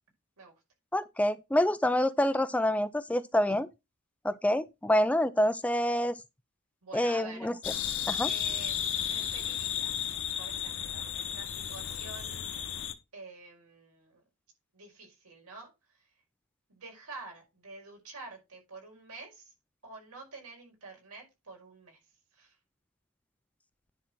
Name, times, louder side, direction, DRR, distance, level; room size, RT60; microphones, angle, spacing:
voice 1, 0.9-3.7 4.2-6.2 6.9-7.5 8.1-8.3, left 1 dB, 5° left, 0.4 m, -27 dB
voice 2, 6.8-7.5 8.2-12.7 13.1-14.2 14.7-16.1 16.7-19.5 19.8-22.0 22.3-22.6, right 3 dB, 80° right, 5.1 m, -48 dB
sound 1, 7.6-12.9, left 9 dB, 60° left, 1.0 m, -33 dB
10.0 x 4.3 x 5.9 m
head